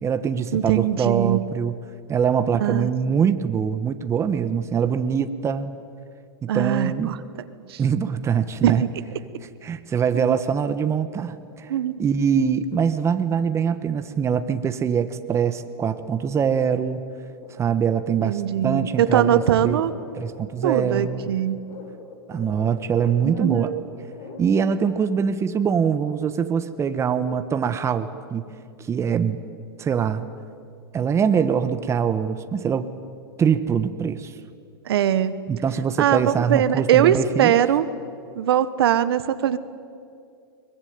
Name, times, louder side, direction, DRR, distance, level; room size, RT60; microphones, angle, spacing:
voice 1, 0.0-1.8 2.1-5.7 6.4-7.1 7.8-8.8 9.6-11.7 12.0-17.0 17.5-19.8 20.2-21.2 22.3-23.7 24.4-28.5 28.9-29.4 29.8-30.2 30.9-32.9 33.4-34.3 35.5-37.6, right 7 dB, 20° right, 11 dB, 1.3 m, -23 dB
voice 2, 0.5-1.4 2.6-2.9 3.2-3.4 6.5-7.2 7.7-7.8 8.6-8.9 10.1-10.4 11.7-11.9 18.2-19.9 20.6-21.6 23.2-23.8 34.9-35.4 36.0-37.9 38.3-39.6, right 10 dB, 75° right, 13 dB, 1.2 m, -21 dB
sound 1, 17.4-25.0, left 4 dB, 55° left, 5.6 m, -41 dB
22.5 x 21.0 x 9.5 m, 2.4 s
hypercardioid pair, 120°, 13 cm